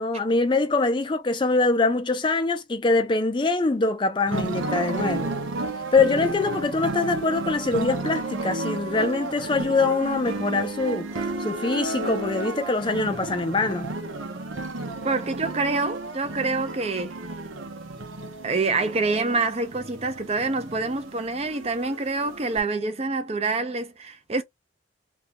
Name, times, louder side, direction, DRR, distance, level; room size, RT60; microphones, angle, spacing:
voice 1, 0.0-5.4 5.9-13.9, left 3 dB, 25° left, 0.4 m, -24 dB
sound 1, 4.3-22.6, right 2 dB, 85° right, 0.8 m, -32 dB
voice 2, 15.0-17.2 18.4-24.4, right 3 dB, 30° right, 0.5 m, -26 dB
3.6 x 2.3 x 2.8 m
head